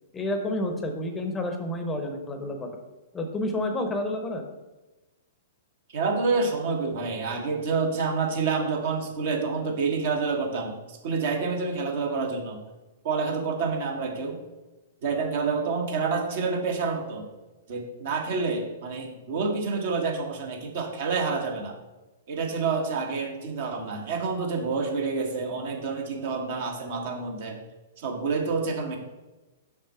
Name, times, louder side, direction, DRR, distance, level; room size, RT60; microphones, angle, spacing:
voice 1, 0.1-2.7 3.1-4.4, left 1 dB, 15° left, 5 dB, 0.8 m, -29 dB
voice 2, 5.9-12.6 13.0-14.4 15.0-17.2 17.7-21.8 22.3-27.6 28.0-29.0, right 4 dB, 50° right, 1 dB, 1.5 m, -28 dB
6.4 x 5.2 x 4.3 m, 1.1 s
figure-of-eight pair, 110°, 0 cm